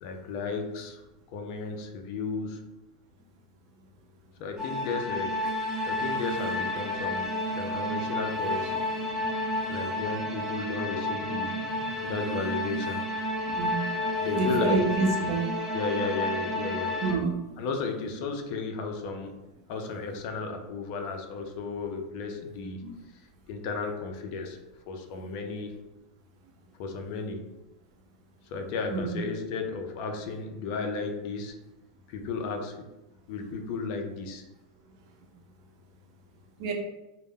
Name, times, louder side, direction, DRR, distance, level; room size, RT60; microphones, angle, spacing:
voice 1, 0.0-1.0 1.3-2.7 4.4-5.4 5.9-8.9 9.7-11.7 12.0-13.1 14.2-14.8 15.7-17.0 17.6-19.4 19.7-22.9 23.5-24.6 24.9-25.8 26.8-27.5 28.5-31.5 32.1-32.9 33.3-34.4, left 4 dB, 55° left, 4 dB, 0.4 m, -34 dB
sound 1, 4.6-17.1, left 1 dB, 20° right, 0.7 m, -31 dB
voice 2, 14.4-15.5 17.0-17.3 22.8-22.9 28.9-29.1 36.6-36.7, right 3 dB, 60° right, 2 dB, 0.6 m, -27 dB
2.0 x 2.0 x 3.5 m, 1.0 s
supercardioid pair, 140°, 3 cm